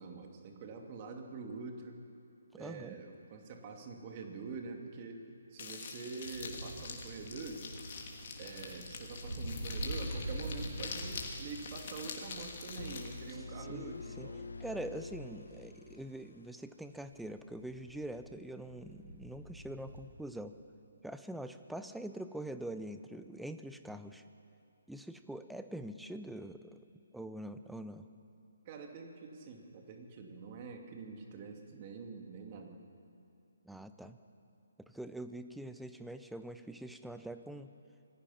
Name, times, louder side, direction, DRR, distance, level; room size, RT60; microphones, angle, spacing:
voice 1, 0.0-2.0 2.5-5.2 5.5-7.7 8.4-14.5 28.7-32.8, right 4 dB, 30° right, 3 dB, 2.5 m, -46 dB
voice 2, 2.5-2.9 13.6-14.3 14.6-20.5 21.0-24.2 24.9-26.8 27.1-28.1 33.6-34.2 34.9-37.7, right 1 dB, ahead, 9 dB, 0.7 m, -44 dB
sound 1, 5.6-13.4, left 5 dB, 40° left, 3.0 m, -45 dB
sound 2, 6.2-16.0 16.9-20.0, right 1 dB, 75° right, 3.9 m, -45 dB
sound 3, 12.8-16.6, left 3 dB, 70° left, 1.4 m, -47 dB
26.5 x 19.0 x 5.8 m, 2.7 s
figure-of-eight pair, 140°, 0 cm